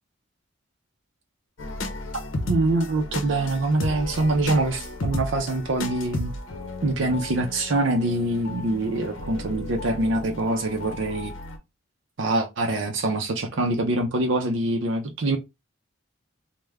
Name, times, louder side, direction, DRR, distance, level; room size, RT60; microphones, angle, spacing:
sound 1, 1.6-11.6, left 1 dB, 70° left, 0.7 m, -34 dB
voice 1, 2.5-6.3 6.8-11.3 12.2-15.4, right 2 dB, 65° right, 0.5 m, -24 dB
3.3 x 2.1 x 3.4 m
head